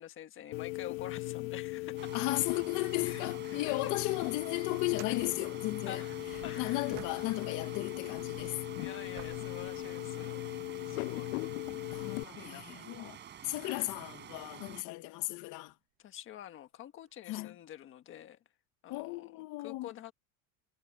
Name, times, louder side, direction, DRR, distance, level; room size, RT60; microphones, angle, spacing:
voice 1, 0.0-2.1 3.0-3.9 5.9-6.2 6.4-6.9 8.8-10.4 10.8-11.3 11.9-12.8 16.0-18.4 18.8-20.1, left 11 dB, 30° left, 1.4 m, -47 dB
sound 1, 0.5-12.2, left 23 dB, 80° left, 0.6 m, -38 dB
sound 2, 2.0-14.8, right 9 dB, 25° right, 4.8 m, -50 dB
voice 2, 2.1-6.0 6.6-8.6 11.9-13.2 13.4-15.7 17.3-17.5 18.9-19.9, left 20 dB, 50° left, 1.2 m, -35 dB
sound 3, 4.8-7.7 8.0-10.7 11.4-11.5 15.6-15.7 17.1-17.2, right 17 dB, 50° right, 1.7 m, -54 dB
cardioid pair, 165°, 40 cm